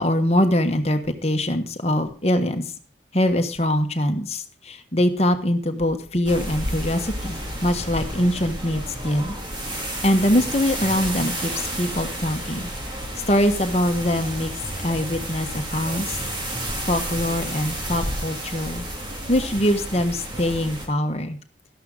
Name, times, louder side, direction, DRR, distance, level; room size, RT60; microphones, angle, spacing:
voice 1, 0.0-2.6 3.1-9.3 9.7-9.8 10.0-12.7 13.3-14.5 14.8-16.2 16.8-18.8 19.3-21.4, left 1 dB, 35° left, 6 dB, 1.3 m, -23 dB
sound 1, 6.3-20.9, right 1 dB, 25° right, 2.3 m, -31 dB
12.5 x 11.5 x 3.8 m, 0.40 s
head